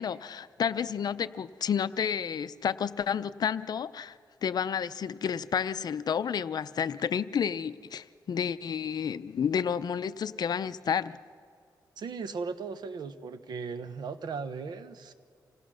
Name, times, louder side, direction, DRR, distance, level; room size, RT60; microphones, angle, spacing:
voice 1, 0.0-4.2 4.4-11.2, left 7 dB, 65° left, 14 dB, 0.6 m, -30 dB
voice 2, 12.0-15.1, right 5 dB, 75° right, 10 dB, 1.1 m, -37 dB
27.0 x 18.5 x 6.3 m, 2.2 s
cardioid pair, 95°, 7 cm